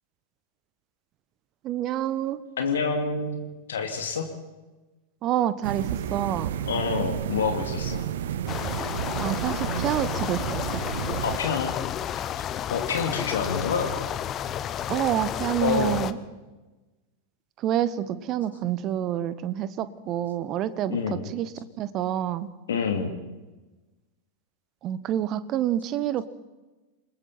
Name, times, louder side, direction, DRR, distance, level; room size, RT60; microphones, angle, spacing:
voice 1, 1.6-2.4 5.2-6.5 9.2-10.8 14.9-16.2 17.6-21.0 21.3-22.5 24.8-26.3, right 11 dB, 35° right, 15 dB, 1.2 m, -28 dB
voice 2, 2.6-4.3 6.7-8.1 11.2-11.7 12.7-14.0 15.6-16.0 20.9-21.2 22.7-23.1, left 5 dB, 65° left, 4 dB, 2.5 m, -27 dB
sound 1, 5.6-11.4, right 10 dB, 60° right, 0.9 m, -31 dB
sound 2, 8.5-16.1, left 10 dB, 30° left, 0.8 m, -31 dB
29.0 x 20.5 x 4.4 m, 1.1 s
figure-of-eight pair, 90°, 0 cm